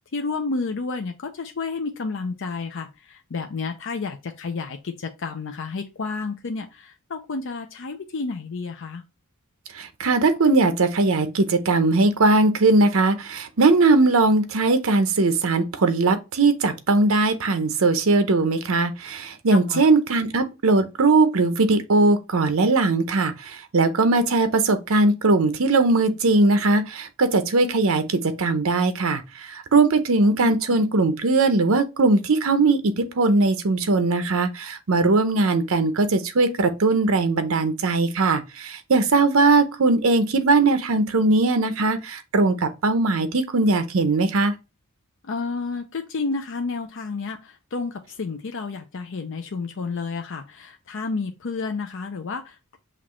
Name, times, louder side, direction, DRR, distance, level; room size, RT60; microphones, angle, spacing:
voice 1, 0.1-9.0 19.5-19.9 30.4-30.8 45.2-52.8, left 4 dB, 60° left, 0.5 m, -31 dB
voice 2, 9.7-44.5, right 3 dB, 70° right, 0.7 m, -20 dB
5.9 x 2.5 x 3.0 m
head